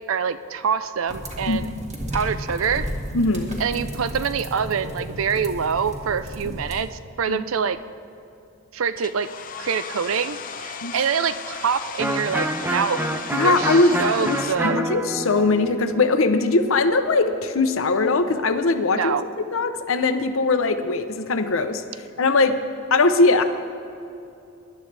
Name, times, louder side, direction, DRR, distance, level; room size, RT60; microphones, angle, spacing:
voice 1, 0.1-1.7 2.1-2.9 3.6-7.8 8.7-9.3 9.6-13.0 13.4-14.8 18.9-19.2, right 6 dB, 80° right, 13 dB, 0.5 m, -25 dB
sound 1, 1.1-6.8, equal, 35° right, 1.7 m, -33 dB
voice 2, 3.1-3.6 7.3-7.4 10.8-10.9 13.3-14.4 14.6-19.1 19.5-21.8 22.2-22.6 22.9-23.4, left 3 dB, 75° left, 9 dB, 0.7 m, -20 dB
Domestic sounds home sounds, 9.0-14.5, left 6 dB, 40° left, 0.6 m, -35 dB
Electric guitar, 12.0-17.6, right 1 dB, 10° right, 0.5 m, -28 dB
19.5 x 11.5 x 3.3 m, 2.7 s
head